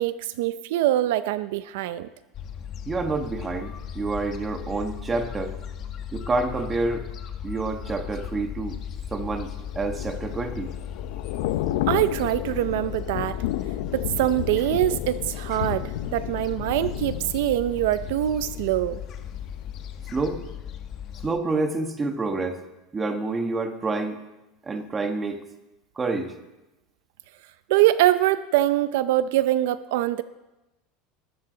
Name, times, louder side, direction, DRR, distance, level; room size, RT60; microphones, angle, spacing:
voice 1, 0.0-2.1 11.9-13.4 13.9-19.0 27.7-30.2, right 14 dB, 70° right, 14 dB, 0.5 m, -23 dB
Gull seagull, 2.3-21.3, left 8 dB, 35° left, 1.2 m, -37 dB
voice 2, 2.9-5.5 6.1-7.1 7.4-8.8 9.1-10.7 20.1-20.4 21.2-22.6 22.9-24.2 24.6-25.4 26.0-26.3, right 3 dB, 15° right, 6 dB, 1.2 m, -28 dB
Thunder / Rain, 9.5-19.5 19.8-20.1, left 14 dB, 75° left, 0.5 m, -32 dB
20.0 x 12.5 x 3.9 m, 0.99 s
supercardioid pair, 160°, 0 cm